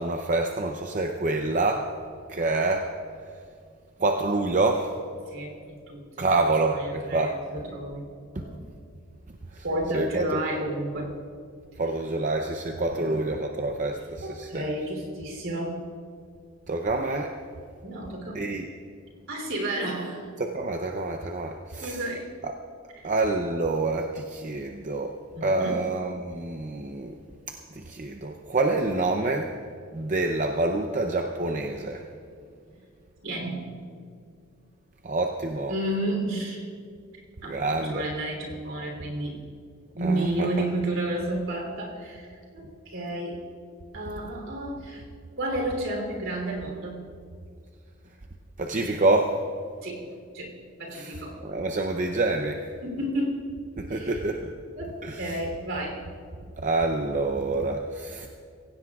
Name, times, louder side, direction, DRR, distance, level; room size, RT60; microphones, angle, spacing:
voice 1, 0.0-1.9 2.3-2.9 4.0-5.0 6.2-7.4 9.5-9.6 9.9-10.4 11.8-14.6 16.7-17.4 18.3-18.7 20.4-22.0 22.4-22.5 23.0-27.1 27.5-29.5 29.9-32.0 35.0-35.7 37.5-38.0 40.0-40.5 48.6-49.4 50.9-52.6 53.8-54.5 55.0-55.3 56.6-58.3, right 2 dB, 35° right, 3 dB, 0.6 m, -27 dB
voice 2, 5.3-6.3 6.6-8.6 9.6-11.1 12.9-13.3 14.2-15.9 17.8-18.4 19.3-20.3 21.8-22.3 23.0-23.1 25.3-25.9 32.4-32.5 33.2-33.8 35.7-36.6 37.4-39.4 39.9-43.4 43.9-45.1 45.4-47.2 49.8-51.4 52.8-53.4 53.9-54.2 54.8-56.1, right 1 dB, 65° right, 1 dB, 3.3 m, -32 dB
24.0 x 16.5 x 2.4 m, 2.3 s
head